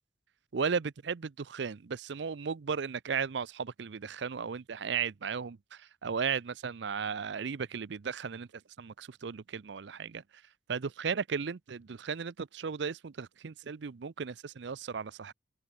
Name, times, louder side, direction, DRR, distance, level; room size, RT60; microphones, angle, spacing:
voice 1, 0.5-8.5 8.8-10.2 10.7-15.3, right 6 dB, 65° right, 0.5 m, -35 dB
open air
head